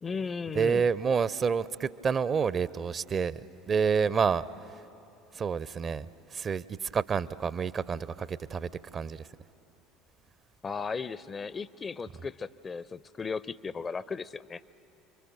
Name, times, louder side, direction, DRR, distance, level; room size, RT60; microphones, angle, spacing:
voice 1, 0.0-0.8 10.6-14.6, left 5 dB, 25° left, 19 dB, 0.5 m, -36 dB
voice 2, 0.5-3.4 3.7-4.4 5.3-6.1 6.3-9.3, right 6 dB, 35° right, 19 dB, 0.5 m, -28 dB
28.5 x 23.5 x 6.1 m, 2.9 s
figure-of-eight pair, 60°, 0 cm